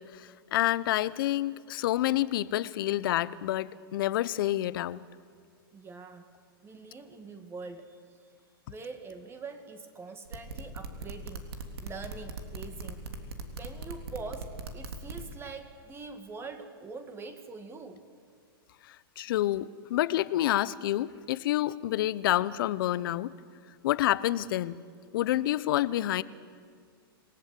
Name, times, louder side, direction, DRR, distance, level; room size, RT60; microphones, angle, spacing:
voice 1, 0.0-5.0 18.9-23.3 23.8-24.8 25.1-26.2, left 14 dB, 60° left, 17 dB, 0.9 m, -28 dB
voice 2, 5.7-6.3 6.6-8.2 8.7-11.5 11.8-13.1 13.6-18.0, right 4 dB, 20° right, 8 dB, 2.2 m, -44 dB
sound 1, 10.2-15.2, right 4 dB, 80° right, 3.4 m, -39 dB
27.5 x 19.5 x 8.5 m, 2.1 s
hypercardioid pair, 130°, 13 cm